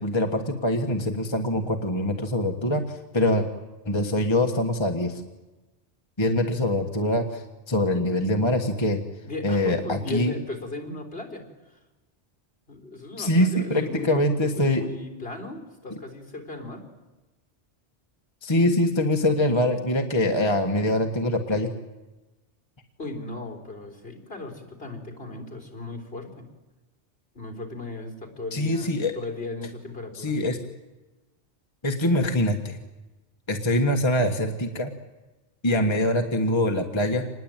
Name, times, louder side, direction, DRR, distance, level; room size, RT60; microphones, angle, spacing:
voice 1, 0.0-3.5 3.8-5.2 6.2-9.0 9.4-10.3 13.2-14.8 18.4-21.7 28.5-29.1 30.1-30.6 31.8-32.8 33.5-34.9 35.6-37.3, left 1 dB, 25° left, 4 dB, 1.6 m, -24 dB
voice 2, 9.2-11.8 12.7-14.2 14.6-16.8 23.0-26.5 27.3-28.9 29.2-30.4, left 2 dB, 55° left, 4 dB, 4.1 m, -37 dB
26.5 x 20.5 x 9.1 m, 1.1 s
omnidirectional pair, 1.2 m